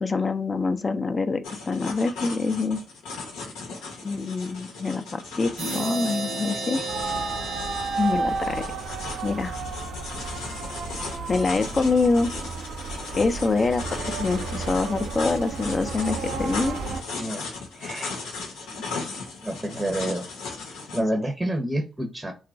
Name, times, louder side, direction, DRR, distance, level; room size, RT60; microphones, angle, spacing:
voice 1, 0.0-2.8 4.0-6.8 8.0-8.6 9.2-9.5 11.3-12.3 13.2-16.8, left 3 dB, 40° left, 0.4 m, -25 dB
sound 1, 1.4-21.0, left 4 dB, 85° left, 0.7 m, -37 dB
sound 2, 5.6-9.1, right 2 dB, 60° right, 0.8 m, -33 dB
sound 3, 6.9-17.0, right 4 dB, 75° right, 0.4 m, -32 dB
voice 2, 17.7-18.2 19.4-20.2 20.9-22.3, right 1 dB, 20° right, 0.6 m, -28 dB
2.9 x 2.4 x 2.4 m
hypercardioid pair, 45°, 0 cm